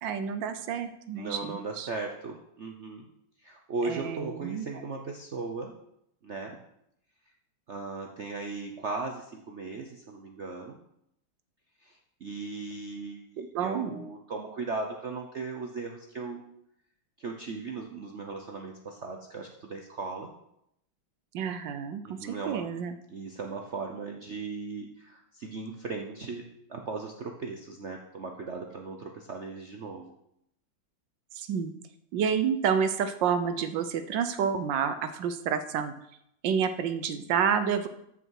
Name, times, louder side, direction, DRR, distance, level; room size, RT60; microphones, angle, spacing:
voice 1, 0.0-1.9 3.8-4.7 13.5-14.0 21.3-23.0 31.3-31.7 32.1-35.9 36.4-37.9, right 7 dB, 70° right, 10 dB, 1.3 m, -29 dB
voice 2, 1.1-3.1 3.4-5.7 6.2-6.6 7.7-10.8 11.8-16.4 17.2-20.3 22.0-22.7 23.1-26.4 26.7-30.1, right 3 dB, 55° right, 2 dB, 0.8 m, -37 dB
13.0 x 5.9 x 4.7 m, 0.78 s
omnidirectional pair, 2.2 m